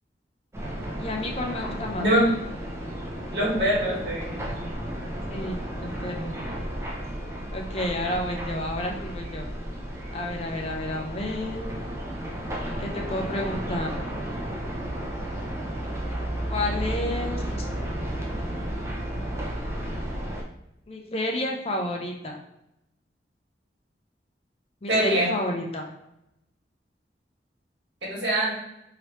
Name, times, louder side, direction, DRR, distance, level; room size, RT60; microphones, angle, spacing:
sound 1, 0.5-20.4, right 1 dB, 15° right, 0.5 m, -33 dB
voice 1, 1.0-2.1 5.3-6.5 7.5-9.5 10.1-11.8 12.8-14.0 16.5-17.7 20.9-22.4 24.8-25.9, left 1 dB, 35° left, 1 dB, 0.5 m, -31 dB
voice 2, 2.0-2.3 3.3-4.5 24.9-25.3 28.0-28.5, right 1 dB, 80° right, -5 dB, 1.5 m, -23 dB
3.2 x 2.9 x 2.9 m, 0.85 s
head